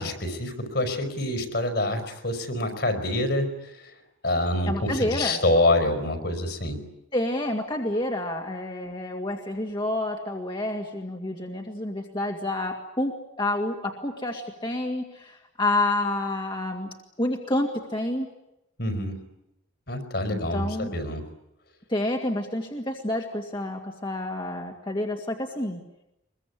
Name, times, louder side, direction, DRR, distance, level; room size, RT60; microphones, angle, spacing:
voice 1, 0.0-3.9 4.2-6.9 18.8-19.2 19.9-21.3, left 1 dB, 55° left, 6 dB, 5.0 m, -26 dB
voice 2, 4.7-5.4 7.1-16.9 17.2-18.3 20.3-20.9 21.9-25.8, left 1 dB, 25° left, 1 dB, 2.3 m, -29 dB
23.5 x 22.5 x 10.0 m, 0.86 s
head